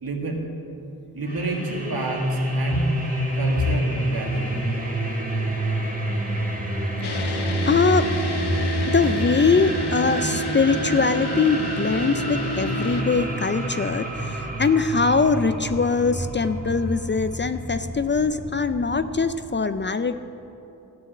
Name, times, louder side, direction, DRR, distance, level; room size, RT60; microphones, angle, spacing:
voice 1, 0.0-0.5 1.1-3.0 3.4-4.7, right 2 dB, 65° right, 0 dB, 2.2 m, -29 dB
sound 1, 1.2-19.2, right 1 dB, 20° right, 2.1 m, -28 dB
sound 2, 7.0-13.0, right 2 dB, 90° left, 1.1 m, -29 dB
voice 2, 7.1-8.1 8.8-20.1, left 4 dB, 30° left, 11 dB, 0.4 m, -22 dB
13.5 x 6.3 x 8.8 m, 2.9 s
cardioid pair, 65°, 39 cm